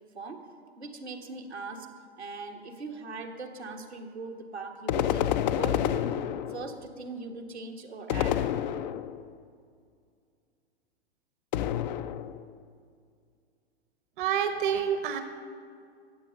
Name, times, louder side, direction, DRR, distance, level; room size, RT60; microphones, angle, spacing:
voice 1, 0.8-1.9 2.2-5.2 5.5-8.4, right 3 dB, 85° right, 1 dB, 1.5 m, -40 dB
sound 1, 4.9-6.8 8.1-9.3 11.5-12.5, left 10 dB, 45° left, 0.5 m, -29 dB
voice 2, 14.2-15.2, right 8 dB, 50° right, 8 dB, 1.0 m, -27 dB
13.5 x 8.5 x 6.7 m, 2.3 s
figure-of-eight pair, 105°, 32 cm